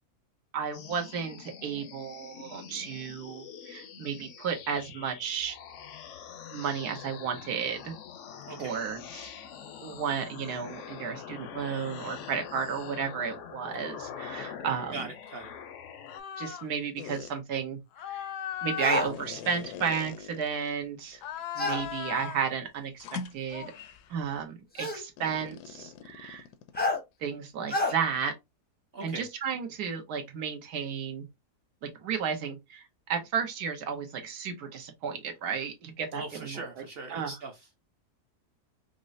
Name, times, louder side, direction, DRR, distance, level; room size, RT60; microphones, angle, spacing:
voice 1, 0.5-5.6 6.5-7.9 8.6-9.3 9.8-15.0 16.4-17.8 18.1-18.3 18.6-21.2 21.6-23.7 24.1-26.5 27.2-28.3 29.0-31.3 31.8-36.6 37.1-37.3, right 6 dB, 80° right, 1.4 m, -33 dB
sound 1, 0.7-16.2, left 8 dB, 65° left, 0.7 m, -44 dB
voice 2, 8.5-8.8 14.9-15.5 28.9-29.3 36.1-37.7, right 3 dB, 50° right, 0.8 m, -40 dB
sound 2, 16.1-16.7 17.0-17.3 17.9-20.7 21.1-22.5 23.0-24.1 25.2-27.0, left 9 dB, 85° left, 1.1 m, -39 dB
sound 3, 18.8-19.1 21.6-21.8 23.1-23.2 24.8-25.0 26.8-27.0 27.7-27.9, left 2 dB, 10° left, 0.5 m, -28 dB
5.1 x 2.0 x 2.5 m
omnidirectional pair, 1.7 m